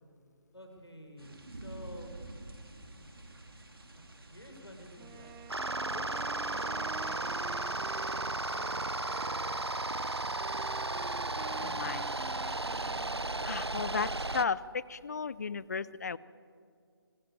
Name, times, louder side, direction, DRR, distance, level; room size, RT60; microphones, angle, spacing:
voice 1, 0.5-2.1 3.9-5.4 5.9-8.7 9.1-9.8, equal, 80° left, 3 dB, 5.2 m, -51 dB
sound 1, 1.2-11.1, right 2 dB, 65° right, 3.6 m, -51 dB
Wind instrument woodwind instrument, 5.0-13.7, right 8 dB, 10° right, 0.7 m, -50 dB
sound 2, 5.5-14.4, right 2 dB, 80° right, 0.9 m, -34 dB
voice 2, 11.6-12.1 13.4-16.2, left 5 dB, 40° left, 20 dB, 0.6 m, -34 dB
26.0 x 18.5 x 8.5 m, 2.2 s
figure-of-eight pair, 150°, 13 cm